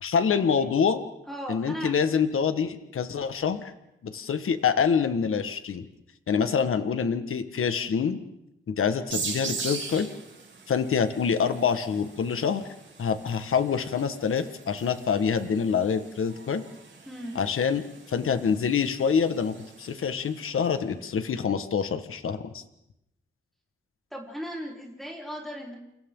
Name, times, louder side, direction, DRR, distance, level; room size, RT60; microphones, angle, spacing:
voice 1, 0.0-1.0 1.5-3.7 4.0-5.9 6.3-8.2 8.7-10.1 10.7-12.6 13.0-16.6 17.4-22.6, left 6 dB, 80° left, 9 dB, 1.6 m, -26 dB
voice 2, 1.3-1.9 17.1-17.3 24.1-25.7, equal, ahead, -4 dB, 4.4 m, -37 dB
sound 1, 9.1-20.4, right 4 dB, 60° right, 5.0 m, -41 dB
29.5 x 29.0 x 3.9 m, 0.86 s
wide cardioid pair, 110°, 21 cm